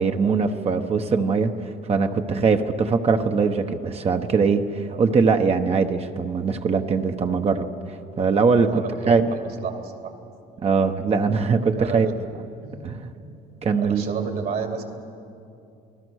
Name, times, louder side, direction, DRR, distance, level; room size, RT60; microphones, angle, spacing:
voice 1, 0.0-1.5 1.9-7.7 8.2-9.3 10.6-12.1 12.8-13.0 13.6-14.0, right 5 dB, 35° right, 5 dB, 1.1 m, -21 dB
voice 2, 8.7-10.1 11.8-12.0 12.6-13.0 13.8-14.8, right 6 dB, 60° right, 4 dB, 2.8 m, -32 dB
28.5 x 19.5 x 6.5 m, 2.6 s
cardioid pair, 110°, 17 cm